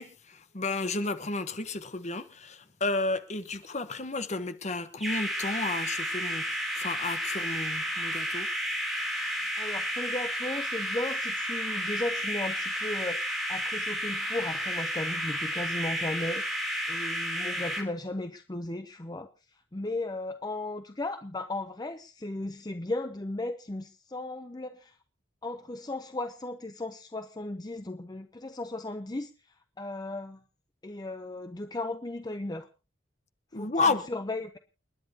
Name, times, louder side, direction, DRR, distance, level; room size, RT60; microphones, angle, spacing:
voice 1, 0.0-8.5 33.5-34.1, left 3 dB, 40° left, 1.1 m, -32 dB
sound 1, 5.0-17.8, equal, ahead, 3.2 m, -32 dB
voice 2, 9.6-16.4 16.9-25.0 25.4-29.3 29.8-30.4 30.8-32.7 33.5-34.6, left 2 dB, 20° left, 0.7 m, -36 dB
29.5 x 10.5 x 2.9 m
head